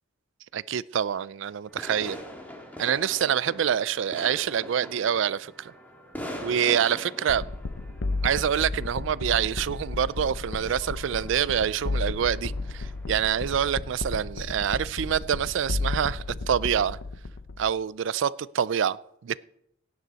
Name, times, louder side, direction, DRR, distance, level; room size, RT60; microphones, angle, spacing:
voice 1, 0.5-2.2 2.8-5.7 6.4-7.4 8.2-17.0 17.6-19.0 19.2-19.4, right 8 dB, 65° right, 0.4 m, -26 dB
sound 1, 1.7-13.5, equal, 10° left, 1.8 m, -43 dB
sound 2, 7.3-17.7, left 3 dB, 70° left, 0.7 m, -33 dB
17.0 x 9.5 x 4.1 m
head